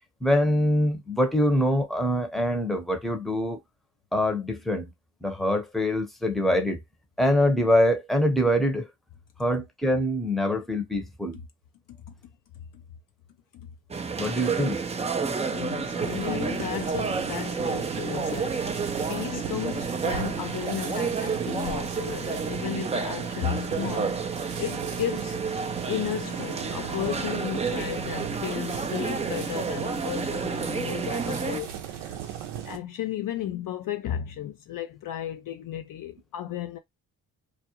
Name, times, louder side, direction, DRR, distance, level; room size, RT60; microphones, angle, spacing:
voice 1, 0.2-3.6 4.1-4.9 5.2-6.8 7.2-8.9 9.4-11.4 14.2-14.8, equal, ahead, 0.8 m, -24 dB
sound 1, 13.9-31.6, right 5 dB, 15° right, 0.4 m, -30 dB
voice 2, 15.4-18.7 19.1-24.2 24.6-25.4 25.9-36.8, left 11 dB, 55° left, 0.5 m, -34 dB
sound 2, 16.0-32.8, right 9 dB, 80° right, 0.6 m, -38 dB
2.4 x 2.1 x 2.9 m
supercardioid pair, 50°, 41 cm